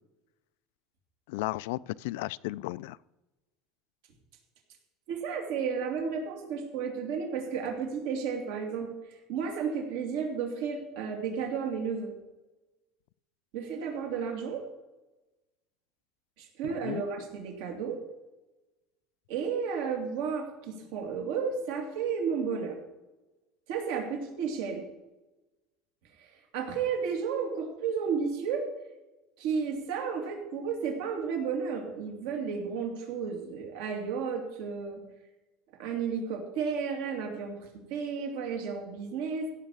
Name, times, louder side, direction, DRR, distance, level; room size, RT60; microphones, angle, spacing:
voice 1, 1.3-3.0 16.6-17.0, left 18 dB, 80° left, 19 dB, 0.3 m, -34 dB
voice 2, 5.1-8.9 9.3-12.1 13.5-14.6 16.4-18.0 19.3-22.8 23.7-24.8 26.2-28.6 29.4-35.0 35.8-39.5, right 6 dB, 75° right, 2 dB, 2.8 m, -32 dB
16.0 x 5.5 x 7.3 m, 1.1 s
cardioid pair, 165°, 0 cm